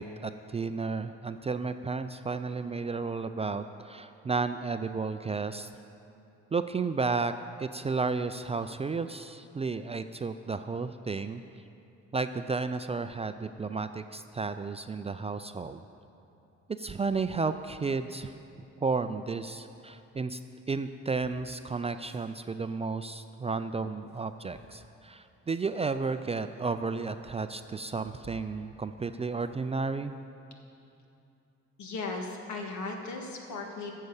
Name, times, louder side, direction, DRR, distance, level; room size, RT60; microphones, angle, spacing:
voice 1, 0.0-5.7 6.5-11.4 12.1-15.8 16.8-18.3 18.8-20.4 20.7-30.1, right 4 dB, 20° right, 10 dB, 0.3 m, -33 dB
sound 1, 19.7-19.8 20.7-21.4 22.0-22.2 23.9-24.8 25.5-25.6 26.3-26.4 26.6-26.7 27.0-27.1 28.0-28.5 29.0-29.9, equal, 35° left, 2.2 m, -57 dB
voice 2, 31.8-33.9, left 3 dB, 75° left, 2 dB, 1.6 m, -37 dB
10.5 x 6.6 x 8.1 m, 2.8 s
cardioid pair, 90°, 30 cm